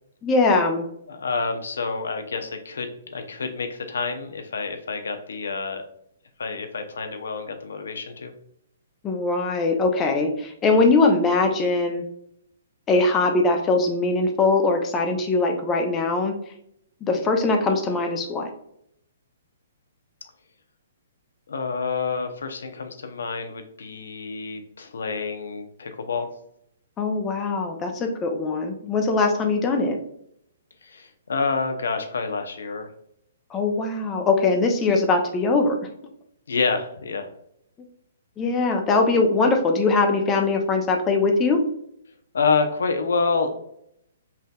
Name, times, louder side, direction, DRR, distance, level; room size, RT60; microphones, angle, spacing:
voice 1, 0.2-0.9 9.0-12.0 12.9-16.3 17.0-18.5 27.0-30.0 33.5-35.8 38.4-41.6, left 3 dB, 20° left, 4 dB, 0.7 m, -21 dB
voice 2, 1.1-5.8 6.4-8.3 21.5-26.3 30.8-32.9 36.5-37.3 42.3-43.6, left 4 dB, 75° left, 7 dB, 0.7 m, -28 dB
5.6 x 2.6 x 2.3 m, 0.73 s
hypercardioid pair, 135°, 0 cm